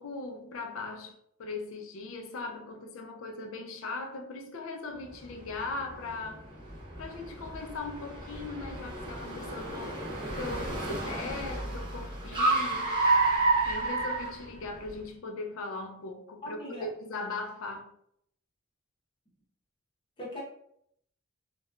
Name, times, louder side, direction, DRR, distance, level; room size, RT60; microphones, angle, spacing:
voice 1, 0.0-6.5 7.0-10.1 10.3-13.0 13.7-17.9, left 3 dB, 70° left, 0.4 m, -39 dB
Car, 5.1-15.0, right 3 dB, 25° right, 0.7 m, -31 dB
voice 2, 16.4-16.9 20.2-20.4, left 1 dB, 25° left, 0.9 m, -39 dB
2.9 x 2.2 x 2.3 m
head